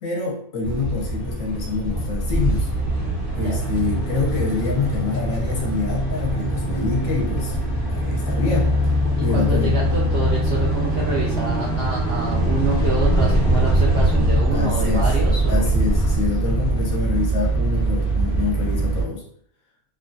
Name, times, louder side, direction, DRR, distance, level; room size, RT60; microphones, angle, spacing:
voice 1, 0.0-2.7 3.4-7.6 7.9-9.0 9.2-9.8 14.5-15.1 15.5-19.2, left 4 dB, 65° left, -1 dB, 1.1 m, -26 dB
sound 1, 0.6-19.0, right 1 dB, 20° left, 0.5 m, -22 dB
voice 2, 9.2-15.7, right 3 dB, 65° right, -4 dB, 0.6 m, -27 dB
3.0 x 2.2 x 2.5 m, 0.63 s
omnidirectional pair, 1.5 m